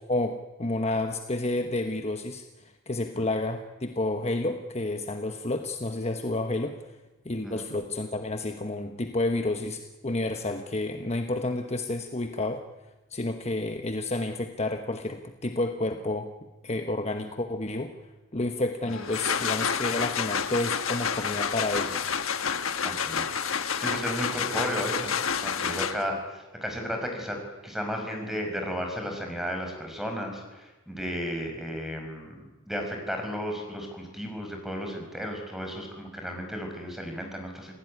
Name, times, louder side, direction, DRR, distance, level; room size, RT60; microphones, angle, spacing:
voice 1, 0.1-6.9 7.2-12.6 13.1-16.3 16.6-17.9 18.3-22.1, left 2 dB, 30° left, 5 dB, 1.2 m, -30 dB
sound 1, 18.9-26.2, left 6 dB, 80° left, 1.3 m, -29 dB
voice 2, 22.8-23.4 23.8-25.1 25.4-27.4 27.6-37.7, equal, ahead, 3 dB, 5.4 m, -34 dB
27.5 x 17.0 x 9.8 m, 1.1 s
head